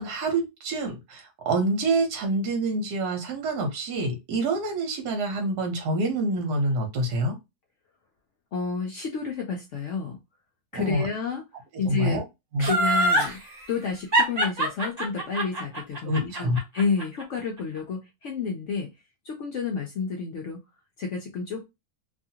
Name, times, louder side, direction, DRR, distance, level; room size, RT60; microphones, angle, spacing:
voice 1, 0.0-7.4 10.7-11.0 11.9-12.2 12.5-12.7 16.0-16.6, right 2 dB, 75° right, 3 dB, 1.2 m, -27 dB
voice 2, 8.5-10.2 10.7-11.4 11.8-12.2 12.6-13.4 13.7-18.9 19.2-20.6 21.0-21.6, left 5 dB, 70° left, 1 dB, 0.7 m, -30 dB
Laughter, 12.6-13.3 14.1-17.2 17.6-17.7, right 1 dB, 35° right, 0.8 m, -23 dB
2.7 x 2.4 x 2.7 m, 0.22 s
omnidirectional pair, 1.8 m